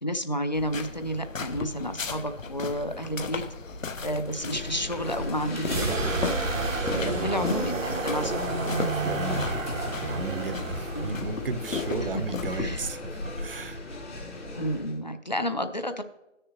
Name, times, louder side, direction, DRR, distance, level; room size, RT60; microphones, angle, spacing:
voice 1, 0.0-3.4 4.0-6.3 6.9-8.5 10.9-11.2 12.0-12.9 14.6-16.0, equal, 35° left, 9 dB, 0.4 m, -31 dB
sound 1, 0.5-12.8, left 4 dB, 85° left, 1.0 m, -36 dB
sound 2, 4.3-15.0, left 2 dB, 60° left, 2.7 m, -38 dB
sound 3, 5.5-13.2, right 2 dB, 85° right, 1.1 m, -31 dB
voice 2, 6.9-7.4 8.8-13.0 13.4-13.8, right 3 dB, 45° right, 10 dB, 0.7 m, -34 dB
15.0 x 6.6 x 2.9 m, 0.98 s
figure-of-eight pair, 160°, 38 cm